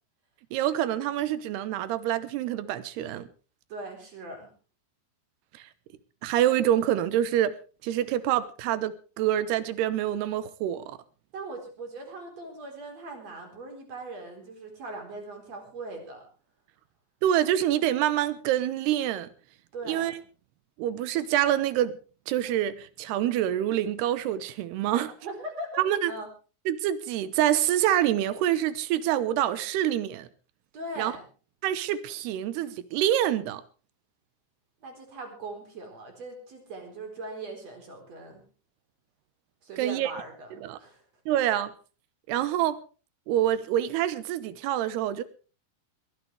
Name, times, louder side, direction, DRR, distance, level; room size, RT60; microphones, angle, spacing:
voice 1, 0.5-3.3 5.5-5.6 6.2-7.5 7.8-11.0 17.2-19.3 19.9-20.1 20.8-22.0 22.3-25.1 25.8-26.1 26.7-30.3 31.0-31.1 31.6-33.6 39.8-40.1 40.6-40.8 41.3-41.7 42.3-42.8 43.3-45.2, right 12 dB, 75° right, 2.8 m, -26 dB
voice 2, 3.7-4.5 11.3-16.3 19.7-20.1 24.9-26.3 30.7-31.3 34.8-38.5 39.6-41.0, right 2 dB, 35° right, 4.9 m, -40 dB
21.5 x 16.0 x 3.4 m
omnidirectional pair, 5.4 m